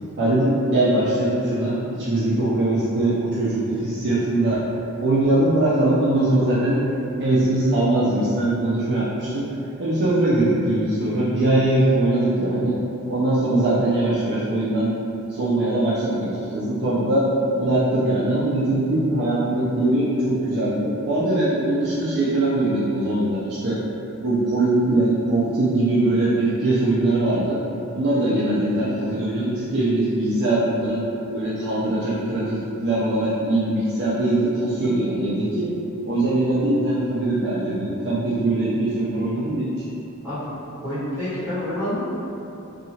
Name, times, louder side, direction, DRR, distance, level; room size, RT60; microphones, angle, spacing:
voice 1, 0.2-4.6 5.0-6.8 7.2-9.5 9.8-12.8 13.1-14.9 15.3-17.3 17.6-23.8 24.2-27.6 27.9-31.0 31.3-35.7 36.0-39.9, right 1 dB, 50° right, -9 dB, 0.4 m, -21 dB
voice 2, 40.8-42.0, left 1 dB, 10° right, -15 dB, 1.5 m, -27 dB
2.8 x 2.4 x 2.7 m, 2.8 s
head